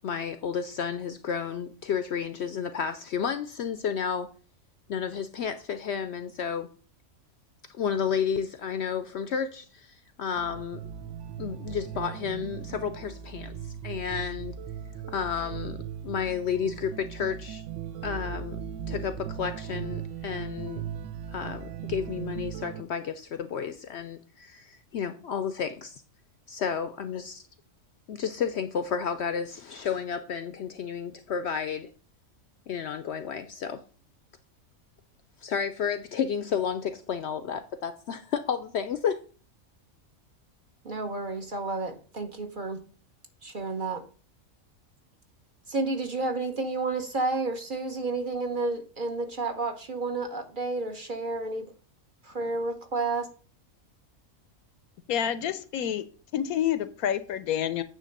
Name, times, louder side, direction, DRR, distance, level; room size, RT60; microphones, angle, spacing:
voice 1, 0.0-4.3 4.9-6.7 7.7-10.8 11.4-14.5 15.1-17.6 18.0-18.6 18.9-20.8 21.3-26.0 26.5-27.4 28.1-31.9 32.7-33.8 35.4-39.2, left 7 dB, 65° left, 0.7 m, -31 dB
sound 1, 10.4-22.8, right 8 dB, 65° right, 0.9 m, -38 dB
voice 2, 40.8-42.8 43.4-44.0 45.7-51.7 52.2-53.3, right 3 dB, 45° right, 0.9 m, -31 dB
voice 3, 55.1-56.0 56.3-57.8, left 10 dB, 90° left, 1.1 m, -28 dB
9.2 x 3.2 x 6.5 m
omnidirectional pair, 1.5 m